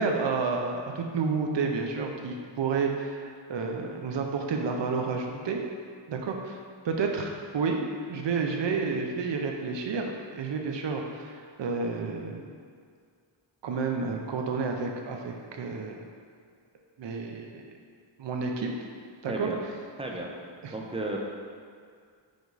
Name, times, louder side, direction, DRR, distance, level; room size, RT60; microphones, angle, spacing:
voice 1, 0.0-5.6 6.1-6.6 6.8-7.8 8.1-12.5 13.6-16.0 17.0-17.6 18.2-18.7 19.2-19.5 20.6-20.7, right 4 dB, 65° right, 2 dB, 0.7 m, -30 dB
voice 2, 19.3-19.6 20.0-20.3 20.7-21.2, right 2 dB, 10° right, -1 dB, 0.8 m, -33 dB
5.1 x 4.6 x 4.0 m, 2.1 s
wide cardioid pair, 85°, 46 cm